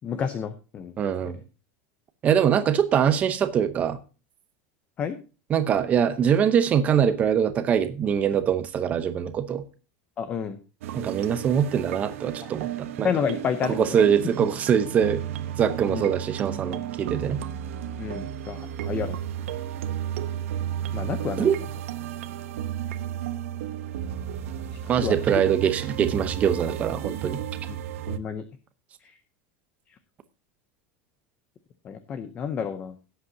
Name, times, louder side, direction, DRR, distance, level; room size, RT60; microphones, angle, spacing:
voice 1, 0.0-1.4 5.0-5.2 10.2-10.6 12.4-12.5 13.0-14.0 15.9-16.1 18.0-19.2 20.9-21.5 25.0-25.4 28.1-28.4 29.0-29.2 31.8-32.9, left 7 dB, 20° left, 0.6 m, -30 dB
voice 2, 1.0-1.4 2.2-4.0 5.5-9.6 10.9-13.1 13.7-15.2 15.6-17.4 21.4-21.6 24.9-27.4, right 8 dB, 20° right, 0.8 m, -23 dB
sound 1, 10.8-28.2, right 10 dB, 85° right, 1.0 m, -33 dB
17.0 x 8.0 x 2.7 m
supercardioid pair, 175°, 7 cm